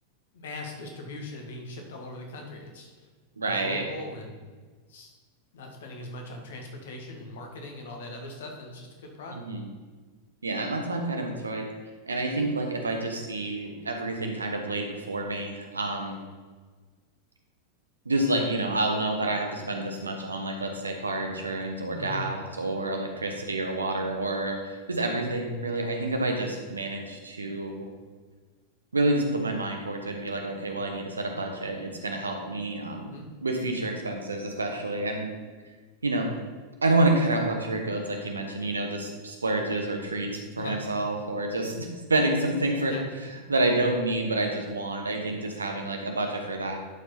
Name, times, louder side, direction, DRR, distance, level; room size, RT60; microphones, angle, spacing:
voice 1, 0.3-2.9 3.3-4.6 4.9-5.1 5.5-9.4 21.9-22.3 32.9-33.3 40.6-40.8 42.9-43.1, left 2 dB, 60° left, 2 dB, 1.6 m, -40 dB
voice 2, 3.4-3.8 9.3-9.6 10.4-11.7 12.1-16.2 18.0-27.9 28.9-33.1 33.4-35.3 36.0-36.3 36.8-40.3 40.6-42.9 43.5-46.8, right 2 dB, 75° right, 3 dB, 1.2 m, -28 dB
11.0 x 4.7 x 4.3 m, 1.4 s
figure-of-eight pair, 90°, 0 cm